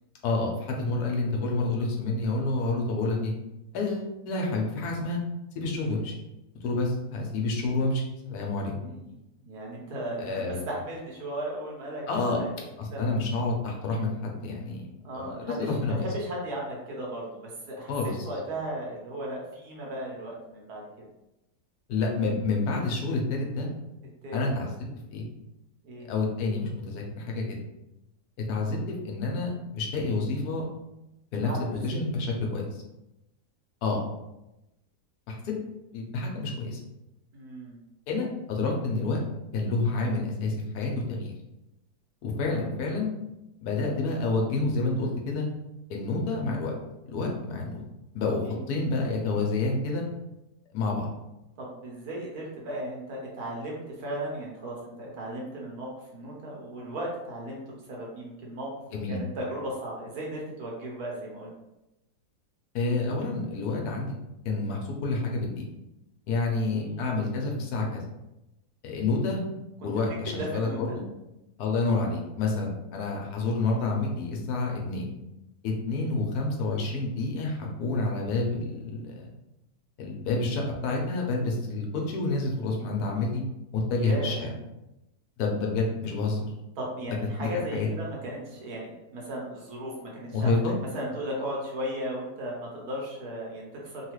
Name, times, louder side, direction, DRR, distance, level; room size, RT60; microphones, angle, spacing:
voice 1, 0.2-3.3 3.7-5.2 5.5-6.2 6.6-8.7 10.2-10.6 12.1-12.4 12.8-14.9 15.1-16.1 17.9-18.3 21.9-23.7 24.3-24.7 25.1-25.2 26.1-27.6 28.5-28.8 29.0-30.6 31.3-32.8 33.8-34.0 35.3-35.6 35.9-36.8 38.1-39.2 39.5-41.3 42.2-43.1 43.6-45.5 45.9-46.7 47.1-47.8 48.1-48.4 48.7-50.0 50.7-51.1 58.9-59.2 62.7-64.1 64.4-65.6 66.3-68.0 68.8-69.4 69.8-71.0 71.6-75.1 75.6-79.3 80.0-83.4 83.7-84.5 85.4-86.5 87.1-87.9 90.3-90.7, left 3 dB, 75° left, 0 dB, 1.2 m, -28 dB
voice 2, 8.8-9.1 9.4-12.5 12.9-13.1 15.0-21.1 24.2-24.5 25.8-26.1 31.4-31.8 37.3-37.8 42.3-42.7 48.4-48.7 51.6-57.6 57.9-58.7 59.1-61.5 66.7-67.1 69.8-69.9 70.3-71.0 75.9-76.2 84.0-84.4 86.8-90.6 90.9-94.1, right 1 dB, 75° right, -3 dB, 1.4 m, -36 dB
3.3 x 2.3 x 3.0 m, 0.93 s
omnidirectional pair, 1.7 m